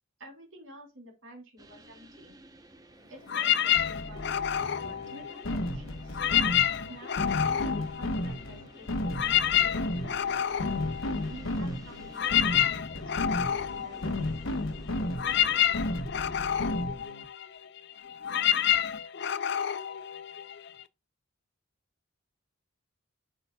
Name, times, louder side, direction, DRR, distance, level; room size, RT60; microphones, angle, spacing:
voice 1, 0.2-2.3 3.1-6.2 6.9-10.6 11.3-14.2, equal, 65° right, 2 dB, 3.3 m, -50 dB
sound 1, 1.6-15.6, right 1 dB, 15° right, 0.7 m, -54 dB
sound 2, 3.3-5.7 6.1-8.6 8.9-20.8, left 10 dB, 50° left, 0.4 m, -29 dB
sound 3, 3.7-17.2, left 1 dB, 75° left, 1.0 m, -34 dB
8.6 x 5.6 x 2.2 m, 0.25 s
head